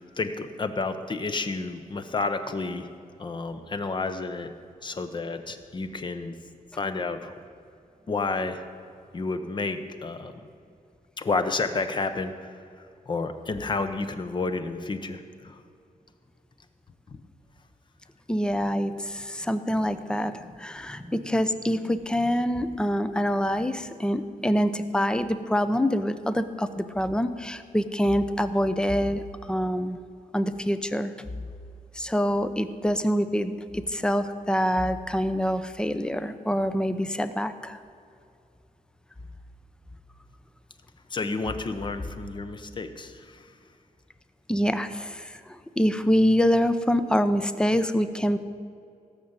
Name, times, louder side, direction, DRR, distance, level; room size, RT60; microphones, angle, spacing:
voice 1, 0.2-2.9 3.2-4.5 4.8-6.3 6.8-7.3 8.1-8.6 9.1-10.3 11.2-12.3 13.1-15.6 17.1-17.2 41.1-43.5, left 3 dB, 30° left, 9 dB, 0.9 m, -30 dB
voice 2, 18.3-30.0 30.3-31.1 31.9-37.8 44.5-48.4, equal, 5° left, 11 dB, 0.6 m, -25 dB
17.0 x 6.6 x 8.8 m, 2.5 s
wide cardioid pair, 175°, 15 cm